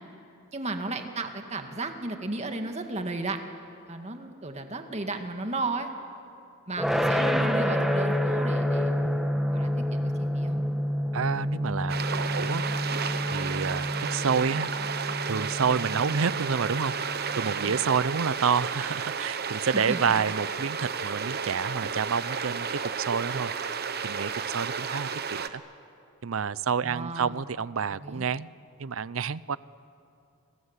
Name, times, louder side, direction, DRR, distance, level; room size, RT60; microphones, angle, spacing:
voice 1, 0.5-3.4 3.9-5.9 6.7-8.9 9.5-10.5 17.7-17.8 19.7-20.2 26.8-27.4 28.0-28.3, right 2 dB, 30° right, 5 dB, 2.0 m, -34 dB
sound 1, 6.8-17.8, equal, ahead, 1.4 m, -29 dB
voice 2, 11.1-12.6 13.3-14.7 15.3-16.9 17.3-23.5 24.0-25.6 26.2-28.5 28.8-29.6, right 6 dB, 70° right, 19 dB, 0.6 m, -29 dB
sound 2, 11.9-25.5, right 6 dB, 50° right, 1.1 m, -32 dB
29.0 x 25.0 x 8.2 m, 2.5 s
head